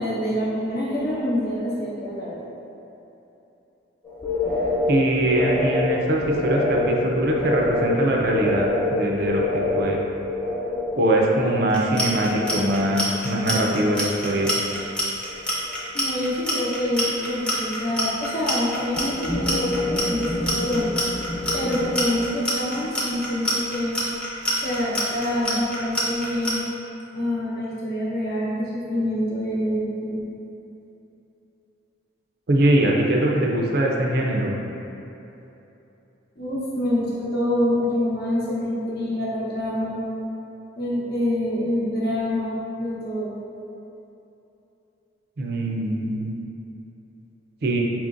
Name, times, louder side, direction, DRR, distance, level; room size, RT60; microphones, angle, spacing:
voice 1, 0.0-2.5 15.9-20.9 21.5-24.0 24.6-26.6 27.1-30.3 36.4-40.0 40.8-43.3, left 1 dB, 50° left, -7 dB, 0.8 m, -26 dB
sound 1, 4.0-13.0 13.2-13.9 14.2-14.9 15.2-15.7 19.0-22.1, left 2 dB, 25° left, 1.0 m, -27 dB
voice 2, 4.9-10.0 11.0-14.5 32.5-34.5 45.4-46.4 47.6-47.8, right 1 dB, 50° right, -1 dB, 0.4 m, -22 dB
Clock, 11.7-26.5, left 1 dB, 5° left, 0.5 m, -27 dB
5.1 x 3.0 x 2.5 m, 2.9 s
head